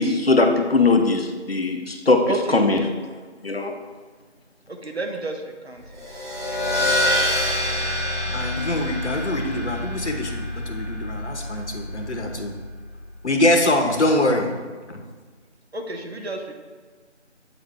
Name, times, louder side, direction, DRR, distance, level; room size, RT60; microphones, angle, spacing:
voice 1, 0.0-2.9 3.4-3.7, left 3 dB, 55° left, 4 dB, 0.7 m, -20 dB
voice 2, 2.3-2.9 4.7-5.8 15.7-16.5, right 2 dB, 60° right, 4 dB, 0.9 m, -30 dB
sound 1, 5.9-13.0, left 1 dB, 40° right, 1.7 m, -26 dB
voice 3, 8.3-12.6 13.2-14.5 14.9-15.0, left 1 dB, 75° left, 4 dB, 1.0 m, -23 dB
8.2 x 4.0 x 3.5 m, 1.5 s
figure-of-eight pair, 175°, 35 cm